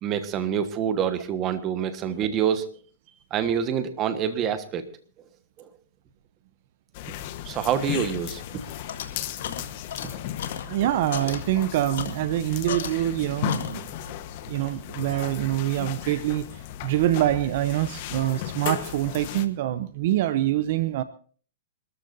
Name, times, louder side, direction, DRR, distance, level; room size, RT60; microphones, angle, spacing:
voice 1, 0.0-2.7 3.3-4.9 5.6-5.7 7.4-8.6 10.4-10.5 14.6-14.7, right 8 dB, 30° right, 10 dB, 1.4 m, -26 dB
sound 1, 6.9-19.5, left 12 dB, 50° left, 1.2 m, -36 dB
sound 2, 8.0-13.2 13.5-14.1, left 8 dB, 75° left, 1.9 m, -37 dB
voice 2, 10.7-14.2 14.5-21.0, right 14 dB, 55° right, 13 dB, 0.8 m, -25 dB
26.5 x 13.5 x 2.7 m, 0.44 s
hypercardioid pair, 145°, 0 cm